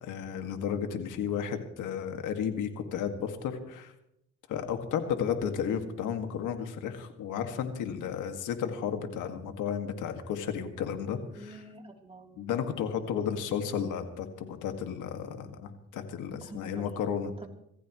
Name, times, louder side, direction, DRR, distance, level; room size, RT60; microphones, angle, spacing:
voice 1, 0.0-3.9 4.5-11.6 12.4-17.5, left 8 dB, 90° left, 6 dB, 2.1 m, -33 dB
voice 2, 11.3-12.5 16.4-16.9 17.4-17.5, right 1 dB, 20° right, 1 dB, 3.5 m, -47 dB
25.5 x 15.0 x 3.2 m, 0.78 s
cardioid pair, 90°, 30 cm